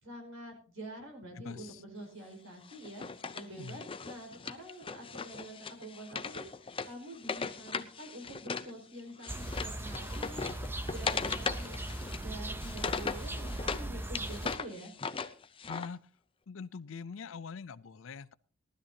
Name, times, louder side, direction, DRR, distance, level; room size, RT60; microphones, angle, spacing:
voice 1, 0.0-11.8 12.2-14.9, right 1 dB, 85° right, 2 dB, 4.7 m, -47 dB
voice 2, 1.3-1.8 3.6-3.8 15.7-16.0 16.5-18.3, left 5 dB, 70° left, 18 dB, 0.5 m, -43 dB
Wood, 2.7-8.7 9.0-13.8 14.1-15.9, left 5 dB, 25° left, 0.6 m, -38 dB
sound 1, 9.3-14.6, right 1 dB, 10° right, 0.7 m, -39 dB
18.5 x 12.5 x 2.8 m, 0.40 s
head